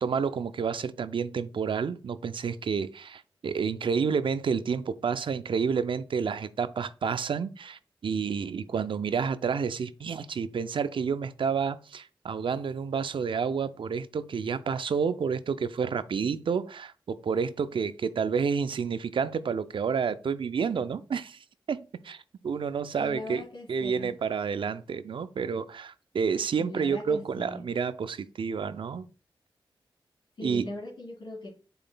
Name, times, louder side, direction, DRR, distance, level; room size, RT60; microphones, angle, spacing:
voice 1, 0.0-21.4 21.7-29.1 30.4-30.7, right 6 dB, 70° right, 0.4 m, -30 dB
voice 2, 23.0-24.1 26.6-27.6 30.4-31.5, left 2 dB, 70° left, 1.8 m, -39 dB
5.2 x 3.8 x 2.2 m
cardioid pair, 45°, 9 cm